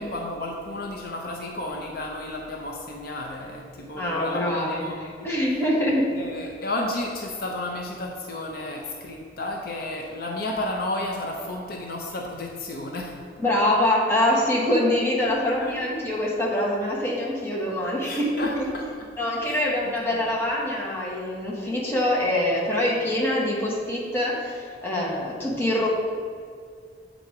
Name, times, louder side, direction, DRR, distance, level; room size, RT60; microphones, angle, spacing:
voice 1, 0.0-5.3 6.1-13.2 15.6-15.8 18.0-19.1 19.4-20.0 20.2-20.3, left 1 dB, 55° left, 0 dB, 0.6 m, -32 dB
voice 2, 3.9-6.1 13.4-18.7 19.2-25.9, left 1 dB, 15° left, -5 dB, 1.2 m, -24 dB
7.9 x 3.8 x 4.7 m, 2.1 s
head